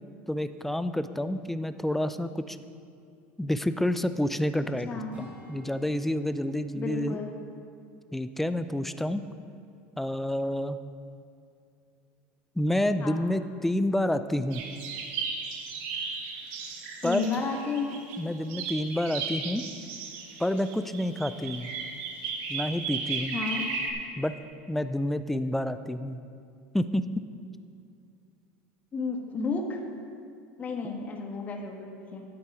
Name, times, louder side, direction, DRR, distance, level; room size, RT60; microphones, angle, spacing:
voice 1, 0.3-2.6 3.4-4.9 5.2-7.2 8.1-9.2 10.0-10.8 12.6-14.6 17.0-17.3 18.2-19.6 20.4-21.7 22.5-23.3 24.2-24.4 24.7-26.2 26.7-27.0, left 1 dB, 5° left, 11 dB, 0.4 m, -29 dB
voice 2, 4.9-5.2 6.7-7.3 13.0-13.2 17.0-17.9 23.3-23.7 28.9-29.8 30.6-32.2, left 4 dB, 30° left, 2 dB, 1.5 m, -32 dB
Strum, 5.1-9.8 10.2-10.4, left 2 dB, 25° right, 2.2 m, -53 dB
sound 1, 14.5-18.2 18.5-23.9, right 5 dB, 70° right, 1.6 m, -35 dB
12.0 x 8.6 x 4.8 m, 2.4 s
supercardioid pair, 130°, 6 cm